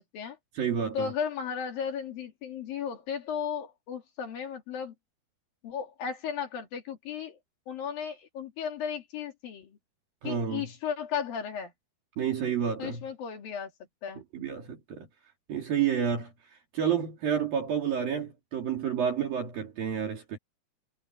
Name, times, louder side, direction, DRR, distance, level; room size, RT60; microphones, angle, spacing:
voice 1, 0.0-0.4 0.9-4.9 5.6-7.4 7.7-9.8 10.2-11.7 12.8-13.7 14.0-14.2, left 7 dB, 60° left, 4.3 m, -35 dB
voice 2, 0.5-1.1 10.2-10.7 12.2-13.0 14.3-15.1 15.5-20.4, right 8 dB, 60° right, 4.8 m, -30 dB
omnidirectional pair, 4.7 m